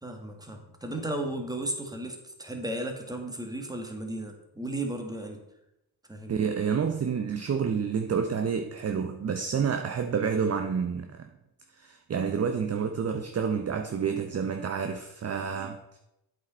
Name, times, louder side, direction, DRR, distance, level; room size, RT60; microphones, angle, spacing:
voice 1, 0.0-5.4 6.1-6.4, right 1 dB, 10° right, 1.7 m, -35 dB
voice 2, 6.3-11.3 11.8-15.8, right 6 dB, 30° right, 0.7 m, -29 dB
8.1 x 5.1 x 4.3 m
supercardioid pair, 60°, 49 cm